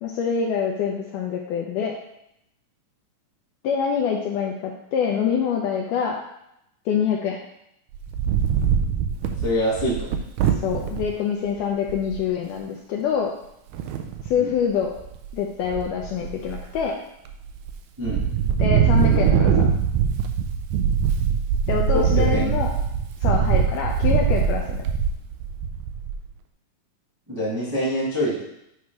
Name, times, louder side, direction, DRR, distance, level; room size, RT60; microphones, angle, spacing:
voice 1, 0.0-2.0 3.6-6.2 6.9-7.4 10.6-13.3 14.2-14.9 15.3-17.0 18.6-19.6 21.7-22.7 23.2-24.9, left 7 dB, 85° left, 0 dB, 1.9 m, -25 dB
Wind, 7.9-11.1 11.6-11.7 11.9-12.3 13.7-14.3 14.8-15.3 15.7-16.8 17.3-17.7 18.0-26.3, right 7 dB, 85° right, 1.9 m, -22 dB
voice 2, 9.4-10.1 14.4-14.5 18.0-18.2 21.9-22.5 27.3-28.3, equal, 10° right, -7 dB, 1.0 m, -25 dB
8.4 x 3.1 x 4.6 m, 0.79 s
omnidirectional pair, 4.2 m